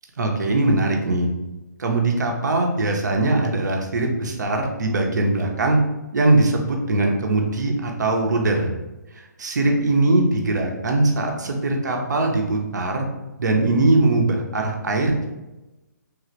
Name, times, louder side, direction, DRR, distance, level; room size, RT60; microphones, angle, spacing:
voice 1, 0.2-1.3 1.8-5.8 6.1-8.7 9.1-13.1 13.4-15.3, right 2 dB, 70° right, 2 dB, 0.7 m, -21 dB
3.3 x 2.4 x 3.1 m, 1.0 s
figure-of-eight pair, 140°, 10 cm